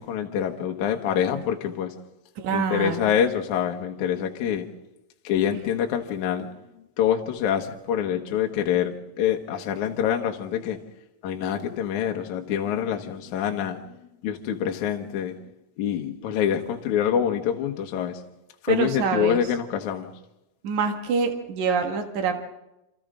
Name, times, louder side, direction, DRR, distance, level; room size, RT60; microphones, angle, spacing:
voice 1, 0.0-1.9 2.5-4.7 5.2-6.5 7.0-10.8 11.2-13.9 14.2-15.3 15.8-18.2 18.6-20.1, left 9 dB, 70° left, 1.8 m, -26 dB
voice 2, 2.4-3.2 18.7-19.4 20.6-22.4, right 5 dB, 55° right, 2.3 m, -26 dB
28.0 x 27.0 x 3.8 m
omnidirectional pair, 5.5 m